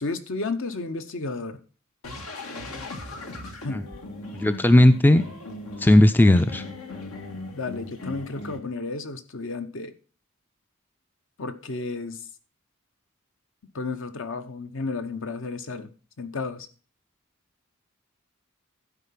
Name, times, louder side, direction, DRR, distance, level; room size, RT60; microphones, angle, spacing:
voice 1, 0.0-1.6 3.6-3.9 7.5-9.9 11.4-12.3 13.7-15.9 16.2-16.7, left 3 dB, 65° left, 0.9 m, -32 dB
sound 1, 2.0-8.6, left 2 dB, 85° left, 1.7 m, -38 dB
voice 2, 4.3-5.2 5.8-6.6, left 1 dB, 10° left, 0.3 m, -16 dB
12.0 x 4.7 x 5.8 m
head